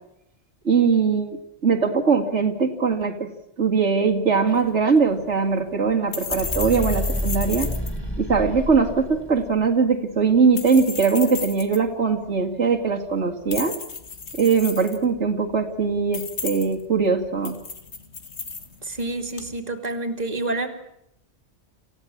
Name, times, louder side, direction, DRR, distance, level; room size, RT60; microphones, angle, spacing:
voice 1, 0.6-1.4 1.6-3.3 3.6-7.7 8.2-13.7 14.4-17.6, right 5 dB, 80° right, 1 dB, 2.5 m, -21 dB
sound 1, 4.5-19.6, left 5 dB, 75° left, 2.2 m, -36 dB
sound 2, 6.3-9.5, equal, 10° left, 6.3 m, -29 dB
voice 2, 18.8-20.7, right 2 dB, 35° right, 3 dB, 2.7 m, -28 dB
27.5 x 16.0 x 8.6 m, 0.79 s
omnidirectional pair, 1.2 m